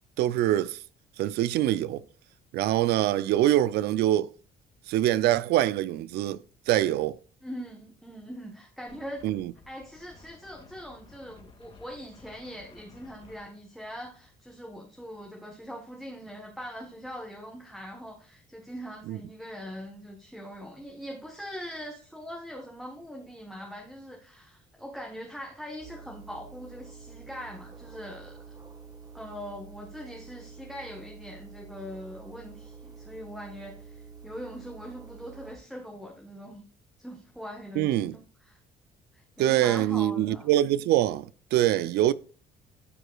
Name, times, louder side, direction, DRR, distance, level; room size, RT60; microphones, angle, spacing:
voice 1, 0.2-0.8 1.2-2.0 2.5-4.3 4.9-6.4 6.7-7.2 9.2-9.5 19.1-19.2 37.8-38.2 39.4-42.1, right 13 dB, 75° right, 0.4 m, -24 dB
voice 2, 7.4-9.2 9.7-28.4 29.1-36.6 37.0-38.6 39.1-40.5, equal, ahead, 1.1 m, -42 dB
Wind, 8.9-14.4, left 3 dB, 35° left, 2.3 m, -55 dB
sound 1, 25.8-35.6, right 5 dB, 20° right, 1.6 m, -48 dB
13.5 x 4.9 x 2.3 m
cardioid pair, 110°, 17 cm